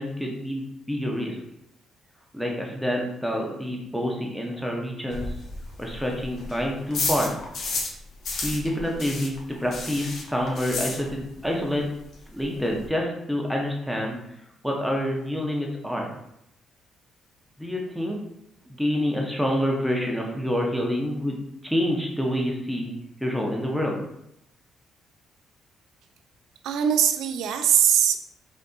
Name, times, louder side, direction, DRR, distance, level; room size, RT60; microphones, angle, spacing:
voice 1, 0.0-1.3 2.3-5.3 5.8-7.3 8.4-11.9 12.3-14.2 14.6-16.1 17.6-18.2 18.8-22.9 23.2-24.0, equal, ahead, -1 dB, 0.7 m, -27 dB
sound 1, 5.1-8.0 8.2-11.5 11.7-11.8 12.1-12.2 12.4-12.9, left 3 dB, 65° left, 0.8 m, -32 dB
voice 2, 26.6-28.2, right 9 dB, 85° right, 7 dB, 0.3 m, -21 dB
3.4 x 2.6 x 2.6 m, 0.79 s
cardioid pair, 90°, 0 cm